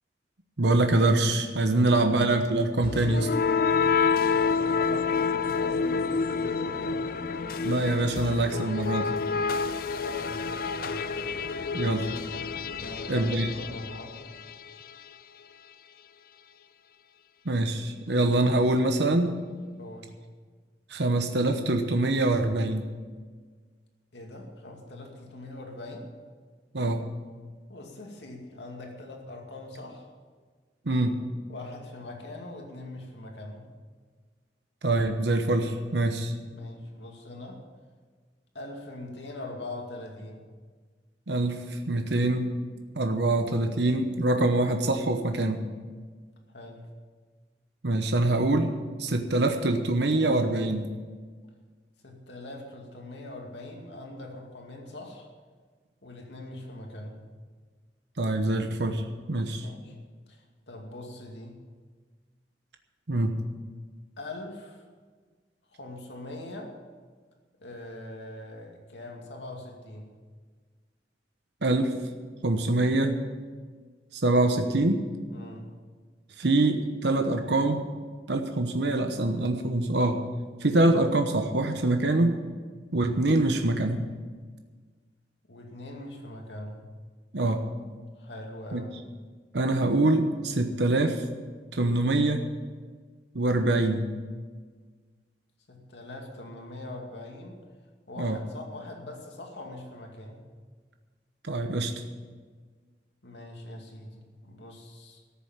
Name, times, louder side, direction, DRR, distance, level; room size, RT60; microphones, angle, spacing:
voice 1, 0.6-3.4 7.6-9.1 11.7-12.1 13.1-13.5 17.4-19.3 20.9-22.8 26.7-27.1 30.9-31.2 34.8-36.3 41.3-42.5 42.9-45.6 47.8-48.7 49.0-50.9 58.2-59.7 63.1-63.3 71.6-71.9 72.4-73.2 74.1-75.0 76.4-77.8 78.3-80.3 80.6-82.4 82.9-84.1 87.3-87.6 88.7-88.8 89.5-91.2 91.7-92.4 93.3-94.1 98.2-98.4 101.4-101.9, right 2 dB, 70° right, 6 dB, 1.0 m, -24 dB
voice 2, 1.6-2.0 4.2-7.1 9.9-11.2 12.7-14.2 19.8-20.2 24.1-26.1 27.7-30.0 31.5-33.7 36.5-37.6 38.5-40.4 46.5-46.9 52.0-55.3 56.0-57.3 59.6-60.0 60.3-61.6 64.2-64.8 65.7-66.7 67.6-70.1 75.3-75.7 85.5-86.9 88.2-88.9 95.7-97.6 98.1-100.4 103.2-105.2, left 1 dB, 80° left, 1 dB, 2.4 m, -42 dB
sound 1, 2.8-14.7, left 5 dB, 55° left, 0.6 m, -28 dB
13.5 x 7.1 x 9.0 m, 1.5 s
head